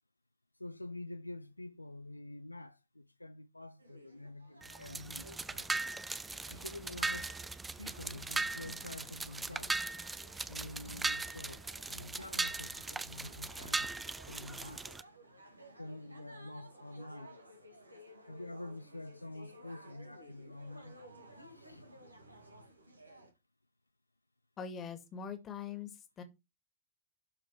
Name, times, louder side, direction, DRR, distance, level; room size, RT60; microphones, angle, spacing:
voice 1, 0.6-5.7 6.3-7.3 7.8-9.8 10.5-15.0 15.8-17.4 18.3-21.0 21.4-21.9, left 2 dB, 85° left, 0.5 m, -47 dB
sound 1, 3.8-23.3, right 1 dB, 85° right, 2.0 m, -57 dB
sound 2, 4.6-15.0, right 3 dB, 10° right, 0.6 m, -39 dB
voice 2, 24.6-26.2, left 6 dB, 30° left, 2.2 m, -43 dB
12.0 x 4.9 x 4.8 m
figure-of-eight pair, 90°, 0 cm